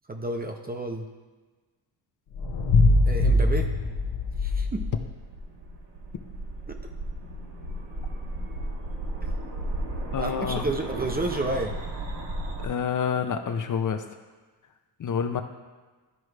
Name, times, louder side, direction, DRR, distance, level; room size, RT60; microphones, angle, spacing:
voice 1, 0.1-1.1 3.1-3.7 4.4-4.9 6.7-6.8 9.2-9.3 10.2-11.7, right 2 dB, 20° right, 4 dB, 0.5 m, -30 dB
sound 1, 2.3-5.1, left 2 dB, 65° left, 0.9 m, -22 dB
sound 2, 4.3-12.6, right 1 dB, 70° right, 1.3 m, -34 dB
voice 2, 10.1-10.7 12.6-14.0 15.0-15.4, left 7 dB, 45° left, 7 dB, 0.6 m, -28 dB
12.5 x 4.6 x 3.2 m, 1.3 s
wide cardioid pair, 145°, 43 cm